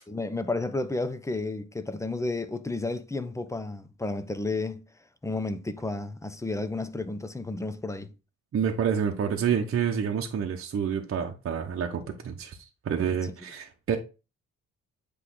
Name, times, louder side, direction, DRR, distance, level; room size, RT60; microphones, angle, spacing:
voice 1, 0.1-4.8 5.2-8.1, left 2 dB, 10° left, 0.7 m, -32 dB
voice 2, 8.5-14.0, right 7 dB, 45° right, 0.9 m, -28 dB
8.2 x 3.3 x 3.8 m
cardioid pair, 90°, 30 cm